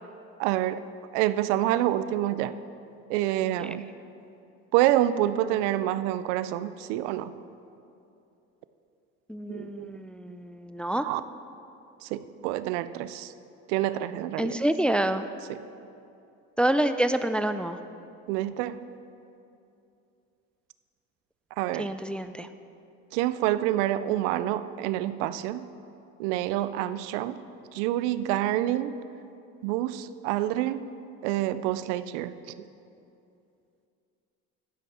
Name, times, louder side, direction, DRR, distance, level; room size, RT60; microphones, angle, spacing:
voice 1, 0.4-0.8 1.1-2.5 3.1-3.9 4.7-7.3 9.5-10.0 10.3-10.4 11.0-11.2 12.0-13.3 13.7-14.7 15.5-15.6 18.3-18.9 21.6-21.9 23.1-25.6 26.2-27.4 27.7-29.0 29.6-30.9 31.2-32.3, right 13 dB, 85° right, 14 dB, 0.5 m, -27 dB
voice 2, 9.3-11.1 14.4-15.3 16.6-17.8 21.8-22.5, right 1 dB, 5° left, 10 dB, 0.3 m, -27 dB
12.0 x 10.0 x 4.3 m, 2.7 s
supercardioid pair, 80°, 34 cm